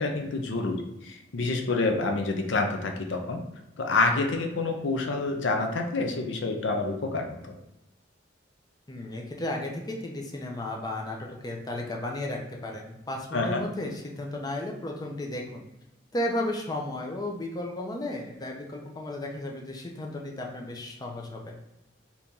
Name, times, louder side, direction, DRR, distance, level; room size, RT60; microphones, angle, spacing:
voice 1, 0.0-3.4 3.8-7.6 13.3-13.6, left 3 dB, 85° left, 3 dB, 0.5 m, -28 dB
voice 2, 8.9-15.6 16.1-21.5, left 1 dB, 20° left, 0 dB, 0.5 m, -34 dB
2.9 x 2.7 x 3.5 m, 0.93 s
head